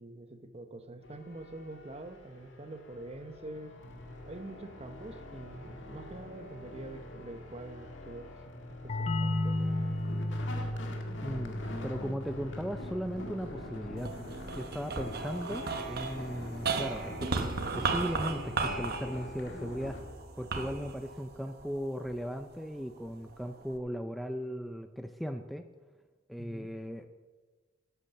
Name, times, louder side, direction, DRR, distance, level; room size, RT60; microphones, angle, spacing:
voice 1, 0.0-3.8 4.3-8.3 8.8-10.0 26.4-26.7, right 1 dB, 35° right, 9 dB, 0.8 m, -45 dB
sound 1, 1.0-20.0, left 1 dB, 75° left, 1.8 m, -45 dB
sound 2, 8.9-14.3, left 1 dB, 35° left, 0.7 m, -34 dB
voice 2, 11.2-14.1 14.6-17.5 17.7-20.0 20.4-25.6 26.3-27.1, equal, ahead, 6 dB, 0.4 m, -37 dB
sound 3, 14.0-22.4 23.0-23.8, right 4 dB, 55° right, 1.1 m, -36 dB
12.0 x 8.4 x 6.7 m, 1.3 s
head